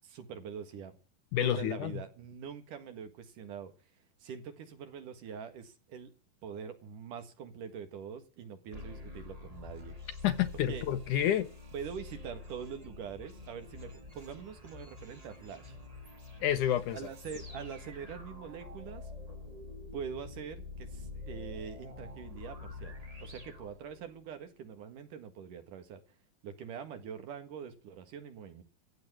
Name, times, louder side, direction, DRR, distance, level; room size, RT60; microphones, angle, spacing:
voice 1, 0.0-1.0 1.4-3.7 4.2-6.1 6.4-9.9 10.7-10.9 11.7-15.8 16.9-19.1 19.9-22.9 23.2-26.0 26.4-28.6, right 7 dB, 65° right, 3.2 m, -44 dB
voice 2, 1.3-1.9 10.2-11.5 16.4-17.0, left 11 dB, 75° left, 2.1 m, -29 dB
sound 1, 8.7-24.3, left 3 dB, 20° right, 1.1 m, -47 dB
15.5 x 7.7 x 8.7 m
omnidirectional pair, 4.1 m